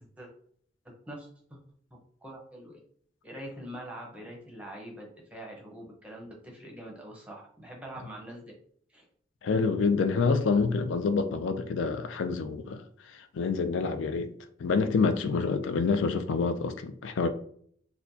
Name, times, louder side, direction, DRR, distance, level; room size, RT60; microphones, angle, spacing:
voice 1, 0.8-1.6 2.2-2.8 3.2-8.5 8.9-9.0, right 1 dB, 5° right, 0.7 m, -44 dB
voice 2, 9.4-12.8 13.1-14.3 14.6-17.3, left 4 dB, 90° left, 0.4 m, -27 dB
4.2 x 2.2 x 2.7 m
head